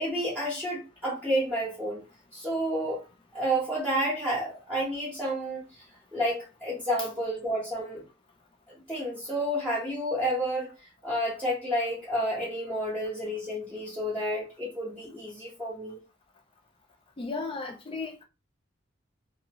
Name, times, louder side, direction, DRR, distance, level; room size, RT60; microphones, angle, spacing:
voice 1, 0.0-2.0 2.3-3.0 3.3-5.6 6.1-8.0 8.9-10.7 11.0-16.0, equal, 10° right, 1.0 m, -30 dB
voice 2, 17.2-18.2, left 3 dB, 25° left, 0.4 m, -35 dB
2.7 x 2.4 x 2.9 m
head